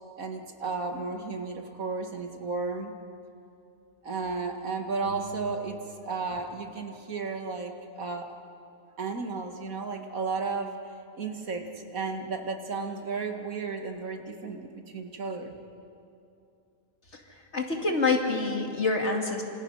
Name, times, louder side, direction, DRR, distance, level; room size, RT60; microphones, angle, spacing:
voice 1, 0.2-2.9 4.0-5.8 6.0-8.3 9.0-10.7 11.1-15.5, right 4 dB, 70° right, 3 dB, 2.3 m, -33 dB
sound 1, 5.0-7.6, right 2 dB, 75° left, 5.3 m, -47 dB
voice 2, 17.1-19.4, left 3 dB, 50° left, 1 dB, 2.8 m, -27 dB
28.0 x 27.0 x 5.7 m, 2.7 s
omnidirectional pair, 1.5 m